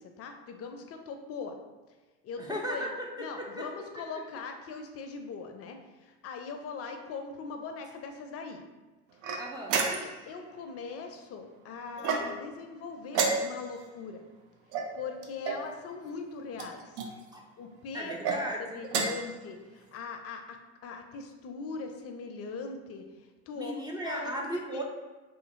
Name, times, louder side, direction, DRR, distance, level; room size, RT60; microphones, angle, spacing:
voice 1, 0.0-1.5 2.2-2.9 3.2-8.6 9.9-14.2 14.9-17.0 17.6-18.4 18.7-20.6 20.8-24.8, left 5 dB, 45° left, 5 dB, 0.5 m, -41 dB
voice 2, 2.4-3.1 3.4-3.7 9.4-9.8 17.3-17.4 17.9-18.8 23.6-24.8, equal, 10° right, -1 dB, 0.4 m, -36 dB
sound 1, 9.2-10.3 12.0-12.6 13.1-13.8 14.7-15.7 16.5-17.1 18.1-18.4 18.8-19.3, right 4 dB, 75° right, 0.5 m, -31 dB
2.7 x 2.5 x 2.5 m, 1.2 s
hypercardioid pair, 65°, 35 cm